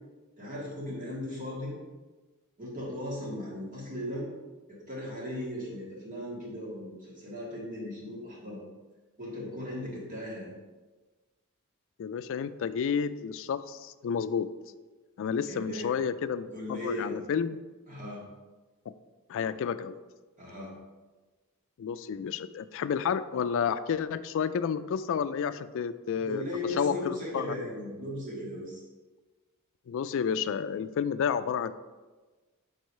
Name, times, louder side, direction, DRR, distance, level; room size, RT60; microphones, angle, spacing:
voice 1, 0.4-1.7 2.6-4.3 4.7-8.6 9.2-10.5 15.5-15.9 16.5-17.2 17.9-18.2 20.4-20.7 26.2-28.8, left 1 dB, 35° right, -5 dB, 1.9 m, -37 dB
voice 2, 12.0-14.5 15.2-17.6 19.3-20.0 21.8-27.7 29.9-31.7, left 7 dB, 60° left, 14 dB, 0.3 m, -31 dB
4.8 x 4.5 x 5.4 m, 1.3 s
head